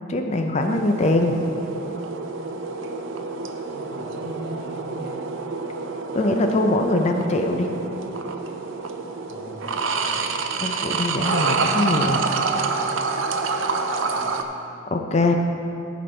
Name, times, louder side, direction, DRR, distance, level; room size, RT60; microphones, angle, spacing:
voice 1, 0.1-1.4 6.1-7.7 10.6-12.2 14.9-15.4, left 2 dB, 35° left, 4 dB, 0.5 m, -22 dB
sound 1, 0.6-14.4, right 4 dB, 75° right, 0.6 m, -27 dB
voice 2, 3.7-5.2 7.0-7.8 9.3-10.3 14.1-14.4, equal, 55° right, -5 dB, 2.0 m, -39 dB
14.0 x 5.2 x 4.3 m, 2.7 s
head